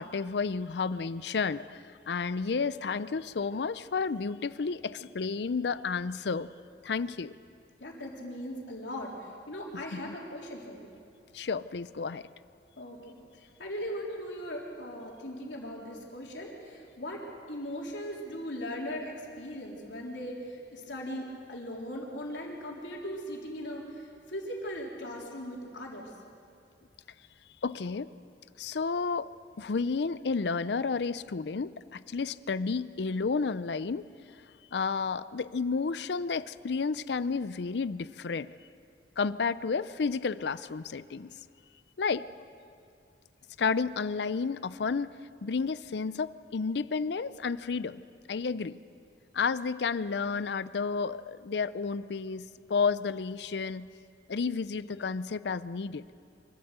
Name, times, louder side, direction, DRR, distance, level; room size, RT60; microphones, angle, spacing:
voice 1, 0.0-1.8 2.1-6.5 6.8-7.3 9.9-10.1 11.3-12.2 27.6-28.1 28.6-29.3 29.6-34.0 34.7-38.5 39.2-41.3 42.0-42.3 43.6-45.1 45.4-48.0 48.3-48.8 49.3-53.9 54.3-56.0, left 5 dB, 65° left, 16 dB, 0.5 m, -31 dB
voice 2, 7.8-10.9 12.8-17.2 17.5-26.1, equal, 85° left, -2 dB, 3.6 m, -39 dB
24.5 x 13.0 x 8.1 m, 2.5 s
head